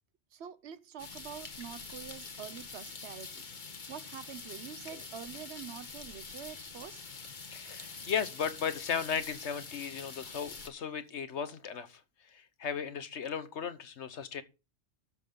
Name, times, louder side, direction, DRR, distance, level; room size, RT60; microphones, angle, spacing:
voice 1, 0.3-3.4 3.9-7.0 10.3-10.4, right 9 dB, 70° right, 1.0 m, -46 dB
sound 1, 1.0-10.7, left 4 dB, 45° left, 1.3 m, -45 dB
voice 2, 7.5-12.0 12.3-14.4, left 7 dB, 80° left, 1.4 m, -36 dB
12.0 x 7.5 x 3.8 m
omnidirectional pair, 1.2 m